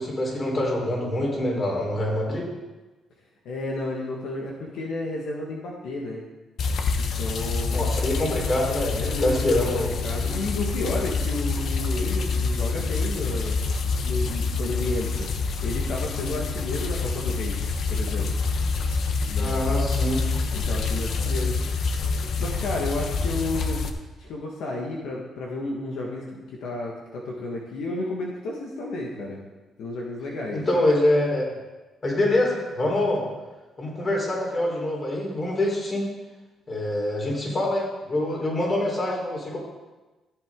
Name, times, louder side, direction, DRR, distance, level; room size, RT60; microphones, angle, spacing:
voice 1, 0.0-2.5 7.7-9.9 19.4-20.2 30.5-31.5 32.0-33.2 33.8-36.1 36.7-39.6, left 1 dB, 35° left, -2 dB, 4.0 m, -25 dB
voice 2, 3.4-6.2 7.0-7.8 8.9-9.3 9.8-13.6 14.0-15.3 15.6-17.6 17.9-18.3 19.3-19.7 20.5-21.6 21.9-23.8 24.2-29.4 29.8-30.6, left 2 dB, 80° left, -2 dB, 1.6 m, -32 dB
sound 1, 6.6-23.9, left 4 dB, 65° left, 0.9 m, -26 dB
14.0 x 8.1 x 3.8 m, 1.2 s
cardioid pair, 90°, 0 cm